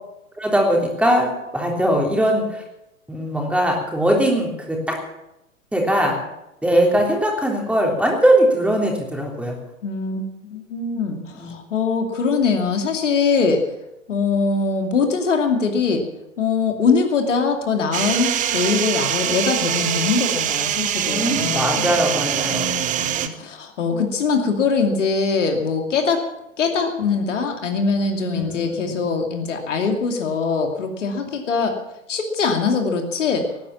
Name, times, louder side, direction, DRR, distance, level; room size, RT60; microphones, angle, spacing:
voice 1, 0.4-2.6 3.1-4.9 5.7-6.1 6.6-9.6 11.4-11.5 21.0-22.7 23.9-24.0 28.2-29.0, right 1 dB, 5° right, 0 dB, 3.5 m, -20 dB
voice 2, 9.8-13.6 14.1-16.0 16.4-22.0 22.4-26.2 26.6-31.8 32.1-33.4, left 5 dB, 65° left, 4 dB, 2.7 m, -22 dB
sound 1, 17.9-23.3, right 10 dB, 20° right, 0.9 m, -23 dB
18.5 x 9.7 x 7.2 m, 0.90 s
figure-of-eight pair, 105°, 40 cm